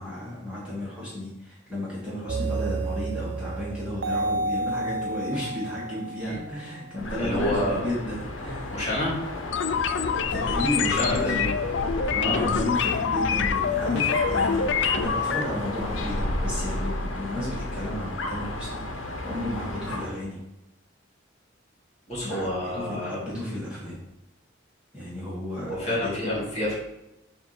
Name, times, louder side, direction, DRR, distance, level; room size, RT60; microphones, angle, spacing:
voice 1, 0.0-8.8 10.3-11.6 12.1-18.8 19.2-20.4 22.2-24.0 24.9-26.5, left 1 dB, 5° right, -8 dB, 1.4 m, -33 dB
sound 1, 2.3-6.9, right 2 dB, 65° right, 0.6 m, -31 dB
Dog, 6.9-20.2, left 1 dB, 85° left, 0.8 m, -32 dB
voice 2, 7.2-7.9 8.7-9.1 10.8-11.5 12.2-12.5 22.1-23.2 25.6-26.7, left 1 dB, 35° left, -4 dB, 2.1 m, -28 dB
sound 2, 9.5-15.4, left 7 dB, 60° left, 0.4 m, -26 dB
6.9 x 2.7 x 5.7 m, 0.90 s
head